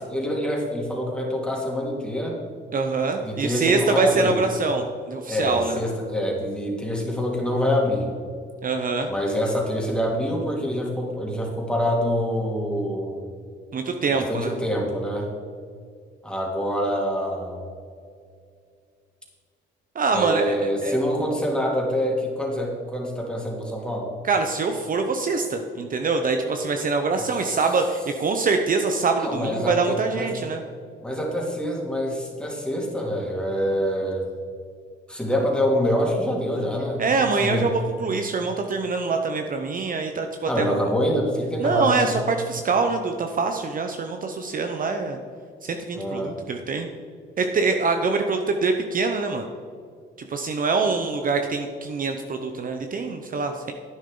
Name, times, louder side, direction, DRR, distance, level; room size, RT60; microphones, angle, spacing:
voice 1, 0.1-2.4 3.2-4.4 5.3-8.1 9.1-13.3 14.1-15.3 16.2-17.6 20.1-24.1 29.1-30.3 31.0-34.3 35.1-37.0 37.4-37.6 40.5-42.1 46.0-46.3, equal, 5° left, -2 dB, 2.9 m, -25 dB
voice 2, 2.7-5.8 8.6-9.1 13.7-14.5 19.9-20.9 24.2-30.6 37.0-40.7 41.6-45.2 45.6-46.9 47.4-49.4 50.3-53.7, right 4 dB, 45° right, 5 dB, 0.8 m, -24 dB
11.0 x 9.1 x 3.8 m, 2.3 s
cardioid pair, 90°, 20 cm